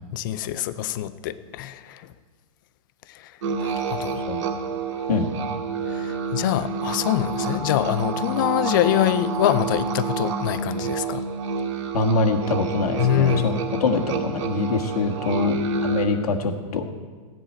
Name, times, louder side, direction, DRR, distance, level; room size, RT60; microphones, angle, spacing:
voice 1, 0.1-2.1 3.1-3.3 3.6-4.2 5.9-11.2 13.0-13.6, left 12 dB, 35° left, 14 dB, 0.5 m, -24 dB
sound 1, 3.4-16.1, right 4 dB, 55° right, 2.0 m, -28 dB
voice 2, 11.9-15.6 15.8-16.9, left 3 dB, 90° left, 3 dB, 1.5 m, -24 dB
16.0 x 10.5 x 4.4 m, 1.5 s
hypercardioid pair, 160°, 19 cm